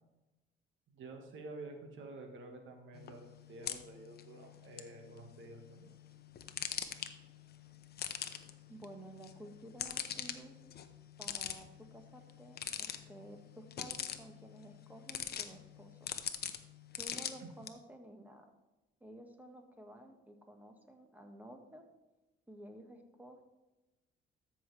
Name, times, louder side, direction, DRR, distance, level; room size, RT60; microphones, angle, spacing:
voice 1, 0.9-5.9 17.4-17.5, right 2 dB, 75° right, 4 dB, 1.6 m, -50 dB
sound 1, 2.9-17.7, left 8 dB, 55° left, 0.8 m, -44 dB
voice 2, 8.7-10.5 11.2-16.1 17.0-18.4 19.0-21.8 22.5-23.5, right 1 dB, 10° right, 4 dB, 1.5 m, -53 dB
13.5 x 5.8 x 3.3 m, 1.0 s
cardioid pair, 90°, 20 cm